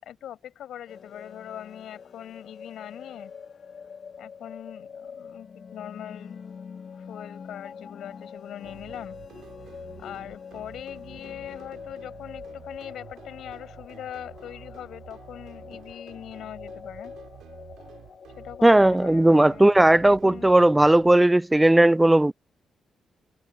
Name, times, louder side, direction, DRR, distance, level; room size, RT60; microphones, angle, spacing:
voice 1, 0.0-3.3 4.2-6.4 6.9-9.2 10.0-17.1 18.4-20.6, left 11 dB, 85° left, 5.2 m, -41 dB
sound 1, 0.9-20.0, left 6 dB, 55° left, 0.9 m, -44 dB
sound 2, 8.6-21.2, right 10 dB, 90° right, 4.6 m, -49 dB
voice 2, 18.6-22.3, right 1 dB, 10° right, 0.3 m, -17 dB
cardioid pair, 95°, 0 cm